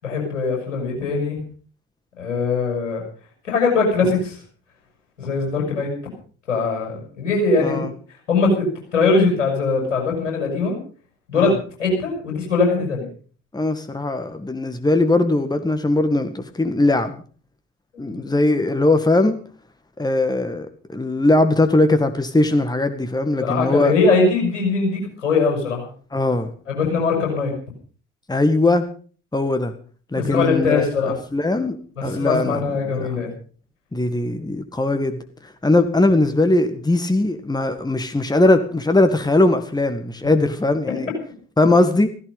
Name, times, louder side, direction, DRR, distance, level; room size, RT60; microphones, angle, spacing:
voice 1, 0.0-1.4 2.2-3.0 3.4-4.4 5.2-5.9 6.5-7.8 8.3-8.6 8.9-10.7 11.3-11.5 11.8-13.0 17.9-18.2 23.4-25.9 26.7-27.5 30.1-31.2 32.0-33.3, left 4 dB, 75° left, 1 dB, 6.8 m, -21 dB
voice 2, 7.6-7.9 11.3-11.6 13.5-17.2 18.0-19.4 20.0-23.9 26.1-26.5 28.3-28.8 29.3-29.7 30.1-33.2 33.9-35.2 35.6-41.1 41.6-42.1, left 2 dB, 10° left, 9 dB, 2.0 m, -20 dB
16.0 x 15.5 x 5.5 m, 0.43 s
figure-of-eight pair, 50°, 36 cm